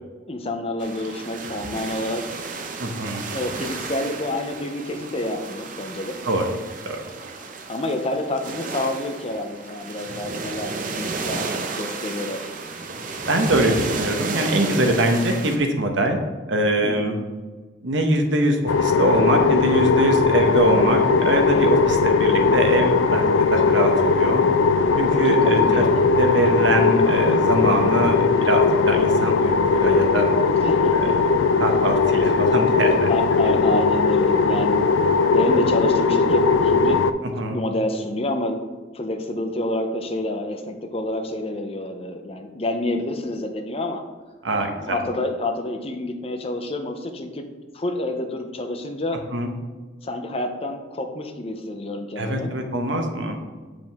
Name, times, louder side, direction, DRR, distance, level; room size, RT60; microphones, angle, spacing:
voice 1, 0.3-2.2 3.3-6.2 7.7-12.5 13.7-13.8 16.8-17.1 21.5-21.7 25.2-26.0 30.6-31.2 33.1-34.8 35.3-37.0 37.5-38.6 38.9-44.0 44.8-47.5 47.7-49.2 50.0-52.5, left 1 dB, 30° left, 5 dB, 0.6 m, -28 dB
sound 1, 0.8-15.6, right 4 dB, 45° right, 0.7 m, -33 dB
voice 2, 2.8-3.2 6.2-6.5 6.8-7.0 13.3-16.2 16.5-17.2 17.8-24.4 25.0-25.8 26.2-30.3 31.6-33.1 37.3-37.6 44.4-45.0 49.3-49.5 52.2-53.4, right 1 dB, 75° right, 4 dB, 1.0 m, -23 dB
sound 2, 18.7-37.1, left 4 dB, 90° left, 0.4 m, -19 dB
7.4 x 5.1 x 3.5 m, 1.3 s
head